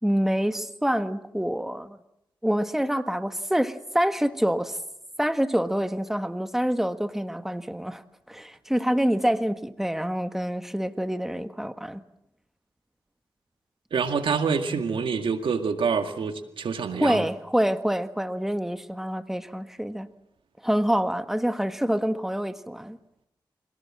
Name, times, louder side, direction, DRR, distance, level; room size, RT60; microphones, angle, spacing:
voice 1, 0.0-2.0 2.4-4.8 5.2-8.0 8.3-12.0 17.0-20.1 20.6-23.0, equal, 5° right, 9 dB, 1.5 m, -26 dB
voice 2, 13.9-17.3, right 5 dB, 85° right, 6 dB, 2.1 m, -26 dB
26.5 x 18.0 x 7.6 m, 0.82 s
cardioid pair, 55°, 9 cm